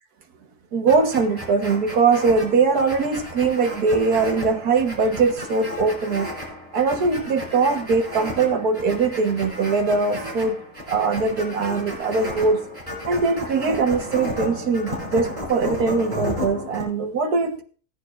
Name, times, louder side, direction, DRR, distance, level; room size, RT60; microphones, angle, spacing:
voice 1, 0.7-6.3 6.7-10.6 10.9-12.6 13.1-17.6, right 4 dB, 75° right, 1.8 m, -21 dB
sound 1, 0.9-16.9, equal, 20° right, 5.7 m, -33 dB
19.5 x 10.5 x 2.5 m
omnidirectional pair, 1.6 m